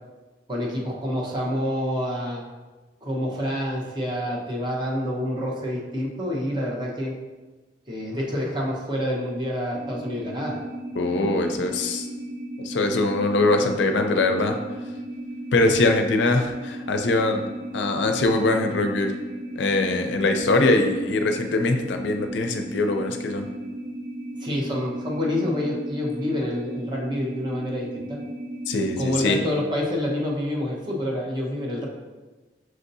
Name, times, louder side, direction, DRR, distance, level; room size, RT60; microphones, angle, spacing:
voice 1, 0.5-2.4 3.0-7.1 7.9-10.6 24.4-28.2 29.0-31.9, left 1 dB, 25° right, -3 dB, 0.8 m, -27 dB
sound 1, 9.7-29.4, right 1 dB, 75° right, 0.5 m, -35 dB
voice 2, 11.0-12.1 12.6-14.6 15.5-17.4 17.7-19.1 19.6-23.5 28.7-29.4, left 2 dB, 80° left, 5 dB, 0.4 m, -22 dB
6.2 x 2.6 x 2.6 m, 1.2 s
head